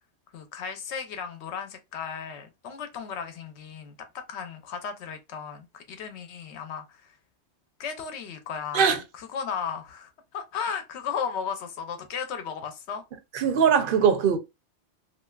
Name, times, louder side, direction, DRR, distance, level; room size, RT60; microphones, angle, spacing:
voice 1, 0.3-7.0 7.8-8.9 9.2-13.0, left 7 dB, 70° left, 0.9 m, -35 dB
voice 2, 13.3-14.4, right 7 dB, 55° right, 0.7 m, -21 dB
3.1 x 2.7 x 2.2 m
omnidirectional pair, 1.2 m